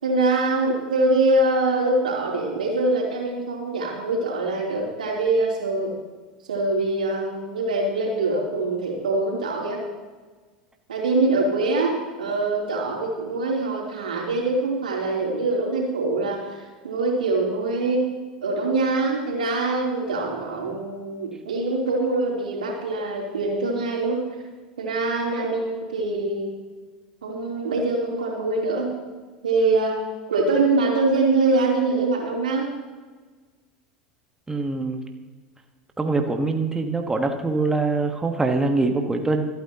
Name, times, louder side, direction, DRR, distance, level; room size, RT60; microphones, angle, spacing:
voice 1, 0.0-5.9 6.5-9.8 10.9-18.1 18.4-24.2 24.8-26.5 27.2-28.9 29.4-30.0 30.3-32.7, right 2 dB, 80° right, -2 dB, 3.5 m, -24 dB
voice 2, 34.5-35.0 36.0-39.5, right 3 dB, 10° right, 4 dB, 1.3 m, -23 dB
26.5 x 9.3 x 3.0 m, 1.4 s
figure-of-eight pair, 80°, 4 cm